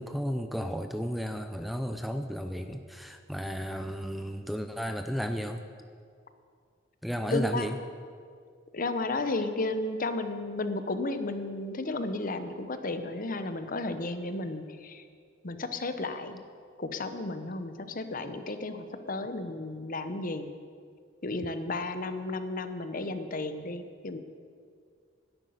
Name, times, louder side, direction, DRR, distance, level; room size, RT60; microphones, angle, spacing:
voice 1, 0.0-5.6 7.0-7.8, equal, ahead, 7 dB, 0.5 m, -33 dB
voice 2, 7.3-7.7 8.7-15.0 15.4-16.4 16.8-20.5 21.2-24.2, left 2 dB, 45° left, 9 dB, 0.9 m, -33 dB
11.5 x 8.2 x 9.5 m, 2.2 s
head